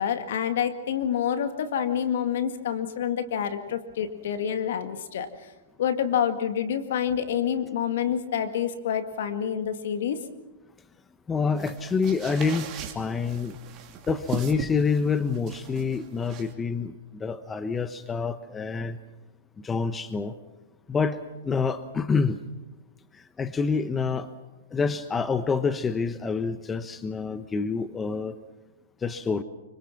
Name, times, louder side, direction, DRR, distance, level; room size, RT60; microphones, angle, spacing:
voice 1, 0.0-5.5 5.8-10.2, left 8 dB, 65° left, 8 dB, 2.1 m, -27 dB
voice 2, 11.3-13.6 14.1-19.0 19.6-20.3 20.9-22.4 23.1-24.3 24.7-28.4 29.0-29.4, left 5 dB, 15° left, 11 dB, 1.0 m, -27 dB
sound 1, 11.6-16.5, right 8 dB, 35° right, 2.7 m, -39 dB
25.5 x 24.5 x 6.0 m, 1.1 s
hypercardioid pair, 120°, 0 cm